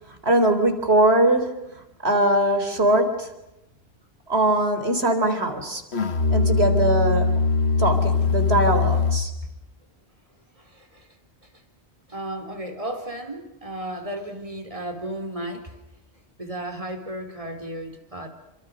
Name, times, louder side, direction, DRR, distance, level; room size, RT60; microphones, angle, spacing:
voice 1, 0.2-1.6 2.0-3.3 4.3-5.8 6.3-7.3 7.8-9.3, right 1 dB, 80° right, 7 dB, 4.3 m, -21 dB
Musical instrument, 5.9-9.5, left 4 dB, 90° left, 1.7 m, -21 dB
voice 2, 10.6-11.1 11.4-11.5 12.1-15.8 16.4-18.3, right 1 dB, 35° right, 5 dB, 4.4 m, -34 dB
28.5 x 26.0 x 6.7 m, 0.90 s
omnidirectional pair, 1.1 m